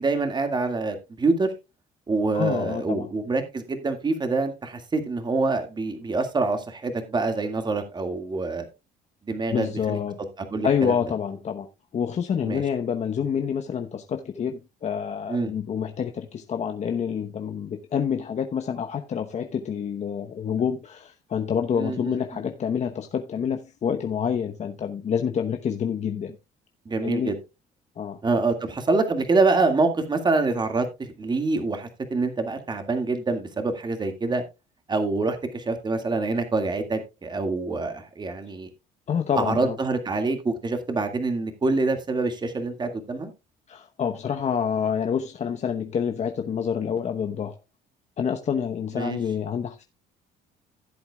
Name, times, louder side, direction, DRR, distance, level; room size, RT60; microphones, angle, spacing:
voice 1, 0.0-1.5 2.1-8.7 9.3-10.0 10.5-11.0 12.4-12.6 15.3-15.5 21.8-22.2 26.9-27.4 28.2-34.4 34.9-38.7 39.4-43.3 49.0-49.2, right 3 dB, 25° right, 2.0 m, -26 dB
voice 2, 2.3-3.1 9.5-10.2 10.6-26.4 27.0-27.4 28.0-28.2 39.1-39.8 43.7-47.6 48.2-49.8, left 7 dB, 40° left, 0.9 m, -27 dB
15.5 x 7.9 x 2.3 m
cardioid pair, 110°, 17 cm